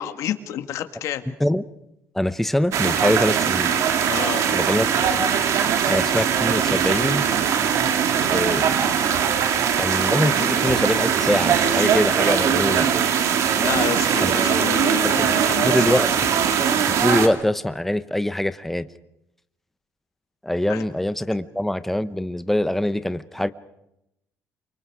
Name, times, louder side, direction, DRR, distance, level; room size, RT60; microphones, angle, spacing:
voice 1, 0.0-1.2 4.0-4.4 8.2-8.3 13.6-16.0 20.7-20.8, left 11 dB, 75° left, 8 dB, 2.0 m, -29 dB
voice 2, 2.1-3.7 4.5-5.0 5.9-7.3 8.3-8.7 9.8-12.9 14.2-14.3 15.0-15.3 15.6-16.1 16.9-18.9 20.4-23.5, left 1 dB, 5° left, 13 dB, 0.9 m, -23 dB
sound 1, 2.7-17.3, right 8 dB, 65° right, 2.4 m, -21 dB
29.0 x 24.5 x 4.9 m, 0.82 s
cardioid pair, 140°, 6 cm